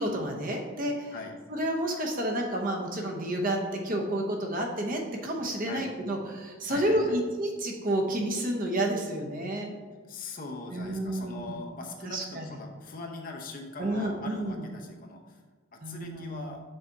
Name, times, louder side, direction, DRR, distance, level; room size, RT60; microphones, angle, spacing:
voice 1, 0.0-1.1 1.5-9.7 10.7-11.5 12.0-12.4 13.8-14.6 15.8-16.4, right 1 dB, 40° right, 1 dB, 0.9 m, -30 dB
voice 2, 6.6-7.2 10.1-15.4 15.7-16.6, left 3 dB, 40° left, 2 dB, 0.7 m, -41 dB
6.4 x 4.2 x 4.7 m, 1.4 s
head